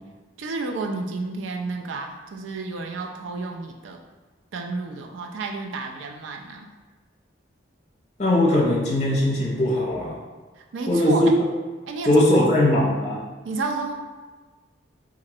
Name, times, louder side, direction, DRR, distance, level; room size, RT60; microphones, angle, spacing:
voice 1, 0.4-4.0 4.5-6.7 10.6-11.2 11.9-12.5 13.4-13.9, right 3 dB, 80° right, 2 dB, 0.3 m, -31 dB
voice 2, 8.2-10.1 10.9-11.3 12.1-13.2, left 1 dB, 35° left, -3 dB, 0.6 m, -20 dB
3.0 x 2.4 x 2.7 m, 1.3 s
head